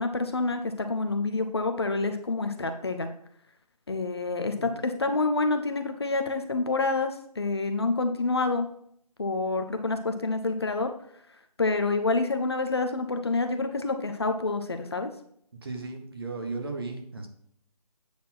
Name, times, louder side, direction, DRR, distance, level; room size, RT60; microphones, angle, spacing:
voice 1, 0.0-3.1 3.9-8.6 9.2-10.9 11.6-15.1, left 3 dB, 40° left, 6 dB, 0.7 m, -27 dB
voice 2, 4.3-4.7 15.6-17.3, right 3 dB, 35° right, 3 dB, 1.4 m, -36 dB
8.6 x 4.2 x 5.9 m, 0.67 s
figure-of-eight pair, 170°, 20 cm